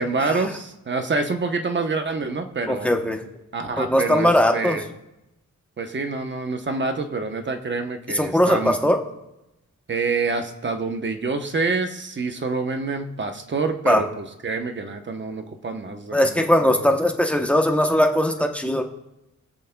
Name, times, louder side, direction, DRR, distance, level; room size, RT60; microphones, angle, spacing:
voice 1, 0.0-2.9 3.5-4.8 5.8-8.8 9.9-16.9, right 3 dB, 35° right, 6 dB, 0.9 m, -27 dB
voice 2, 2.7-3.2 3.8-4.8 8.1-9.0 13.9-14.0 16.1-18.8, left 1 dB, 5° left, 3 dB, 0.8 m, -19 dB
24.0 x 8.2 x 2.2 m, 0.90 s
wide cardioid pair, 165°, 31 cm